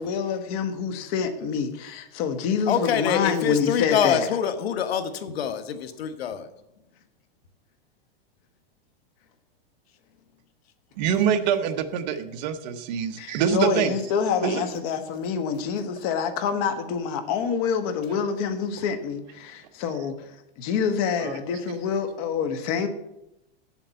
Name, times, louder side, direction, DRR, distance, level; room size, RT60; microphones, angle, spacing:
voice 1, 0.0-4.3 13.2-20.1 20.6-22.9, left 6 dB, 40° left, 8 dB, 1.2 m, -27 dB
voice 2, 2.7-6.5, left 8 dB, 90° left, 9 dB, 1.3 m, -25 dB
voice 3, 11.0-14.0 14.4-14.6 21.2-21.4, right 8 dB, 45° right, 8 dB, 1.1 m, -25 dB
7.8 x 7.2 x 8.1 m, 0.87 s
supercardioid pair, 165°, 30 cm